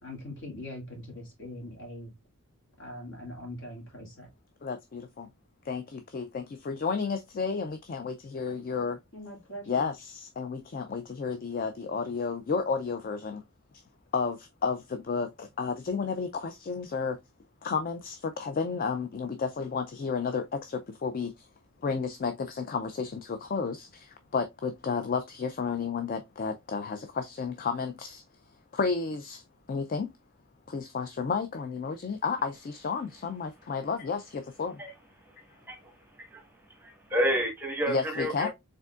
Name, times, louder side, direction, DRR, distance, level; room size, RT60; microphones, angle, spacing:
voice 1, 0.0-2.1 2.8-4.3 9.1-9.9, left 1 dB, 60° left, 2.0 m, -42 dB
voice 2, 4.6-5.3 5.7-9.0 9.7-13.4 14.1-17.2 17.6-21.5 21.8-28.2 28.7-29.4 29.7-30.1 30.7-34.8 37.9-38.5, left 5 dB, 40° left, 0.4 m, -32 dB
voice 3, 36.7-38.5, equal, 10° right, 1.2 m, -30 dB
4.9 x 3.6 x 2.3 m
head